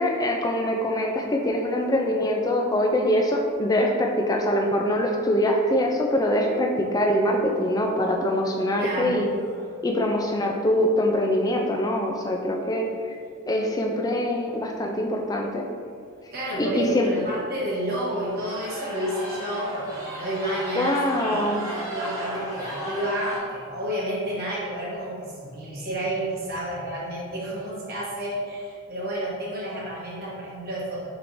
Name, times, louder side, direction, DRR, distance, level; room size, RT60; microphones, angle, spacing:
voice 1, 0.0-9.3 9.8-12.9 13.5-15.6 16.6-17.1 20.8-21.6, left 1 dB, 15° left, 1 dB, 0.3 m, -23 dB
sound 1, 7.8-8.2 8.7-8.8 9.2-9.7 12.9-13.0 14.1-14.2 14.5-14.8 15.3-15.4 16.1-16.2 16.5-16.6 17.1-17.5 18.1-23.4, right 1 dB, 15° right, 1.0 m, -36 dB
voice 2, 8.8-9.2 16.3-31.1, right 1 dB, 45° right, -6 dB, 1.0 m, -30 dB
4.9 x 3.0 x 2.6 m, 2.2 s
head